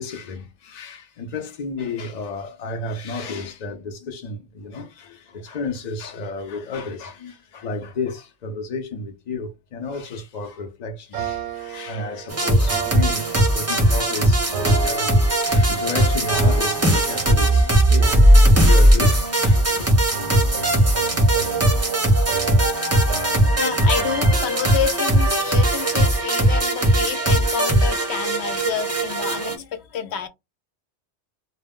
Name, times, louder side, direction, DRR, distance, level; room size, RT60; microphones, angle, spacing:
voice 1, 0.0-19.9, left 3 dB, 55° left, 0.5 m, -32 dB
sound 1, 11.1-14.1 14.5-15.9 16.3-17.7 18.0-19.7 20.1-24.8, right 6 dB, 90° right, 0.9 m, -34 dB
sound 2, 12.3-29.6, right 1 dB, 20° right, 0.4 m, -18 dB
voice 2, 22.8-30.3, left 7 dB, 80° left, 0.9 m, -29 dB
2.1 x 2.0 x 3.4 m
omnidirectional pair, 1.1 m